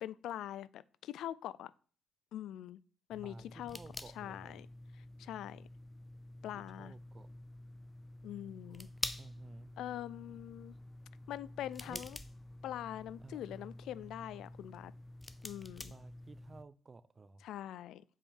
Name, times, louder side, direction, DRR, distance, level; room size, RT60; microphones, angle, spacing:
voice 1, 0.0-1.7 2.3-2.8 3.1-3.8 4.1-4.7 4.9-5.7 6.4-6.9 8.2-8.9 9.8-10.7 11.3-12.2 12.6-14.9 15.4-15.9 17.4-18.0, left 12 dB, 80° left, 0.4 m, -43 dB
sound 1, 3.1-16.6, left 1 dB, 15° left, 0.7 m, -48 dB
voice 2, 3.2-4.6 6.5-7.3 9.2-9.7 11.8-12.1 13.2-13.7 15.9-17.4, right 4 dB, 30° right, 0.6 m, -55 dB
7.4 x 5.4 x 7.2 m
cardioid pair, 90°, 0 cm